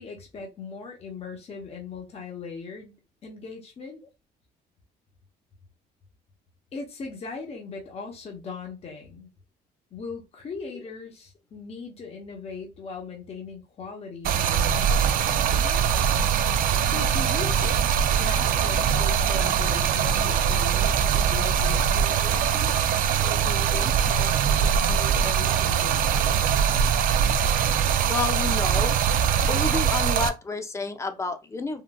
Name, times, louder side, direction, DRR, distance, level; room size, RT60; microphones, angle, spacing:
voice 1, 0.0-4.0 6.7-9.3 9.9-16.0 16.8-17.9 18.2-22.9 23.2-26.6, left 4 dB, 35° left, 0.9 m, -39 dB
Stream, 14.2-30.3, right 8 dB, 55° right, 0.4 m, -22 dB
voice 2, 28.0-29.0 29.5-31.8, left 4 dB, 15° left, 0.5 m, -30 dB
3.8 x 2.3 x 2.3 m
cardioid pair, 110°, 17 cm